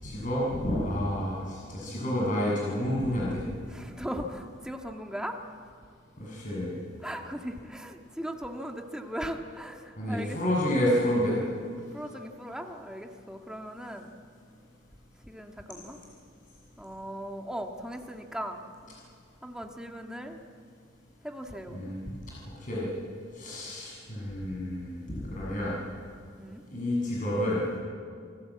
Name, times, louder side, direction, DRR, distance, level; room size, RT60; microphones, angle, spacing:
voice 1, 0.0-3.4 6.2-6.7 10.0-11.4 21.7-22.0 22.6-22.9 23.3-25.7 26.7-27.6, left 1 dB, 45° left, -6 dB, 7.2 m, -29 dB
voice 2, 3.7-5.6 7.0-10.4 11.9-14.1 15.2-16.0 16.8-18.6 19.4-20.4 21.2-21.8 26.4-26.6, equal, 5° right, 3 dB, 1.7 m, -38 dB
27.5 x 19.0 x 8.6 m, 2.2 s
head